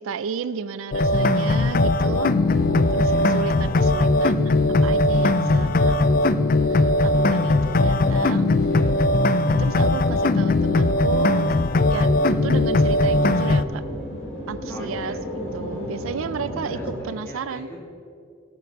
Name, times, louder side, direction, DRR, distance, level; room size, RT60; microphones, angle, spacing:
voice 1, 0.0-2.3 2.9-4.5 4.8-8.6 9.6-11.5 11.9-13.8 14.5-16.8 17.0-17.7, right 6 dB, 85° right, 16 dB, 0.4 m, -33 dB
sound 1, 0.9-13.6, left 2 dB, 45° left, 0.4 m, -19 dB
sound 2, 2.2-17.0, equal, 75° left, 3.2 m, -34 dB
voice 2, 3.0-3.3 8.6-8.9 14.7-15.2 16.6-17.8, equal, 10° left, -2 dB, 2.1 m, -42 dB
17.0 x 6.0 x 7.1 m, 2.4 s
head